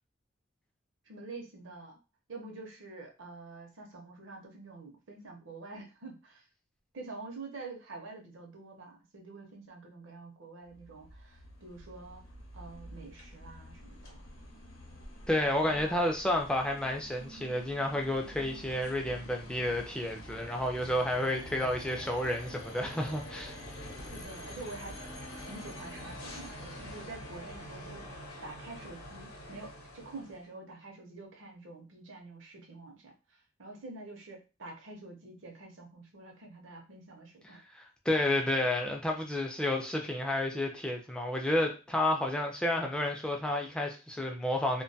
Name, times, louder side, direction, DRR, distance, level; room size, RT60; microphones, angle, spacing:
voice 1, 1.1-2.0 2.3-6.5 6.9-12.2 12.5-14.2 15.3-16.0 24.1-25.0 25.5-37.6, right 3 dB, 60° right, 2 dB, 0.6 m, -47 dB
sound 1, 10.6-30.5, left 1 dB, 85° left, 0.7 m, -47 dB
voice 2, 15.3-23.6 37.7-44.8, left 1 dB, 5° left, 1 dB, 0.3 m, -31 dB
2.2 x 2.2 x 2.6 m, 0.31 s
head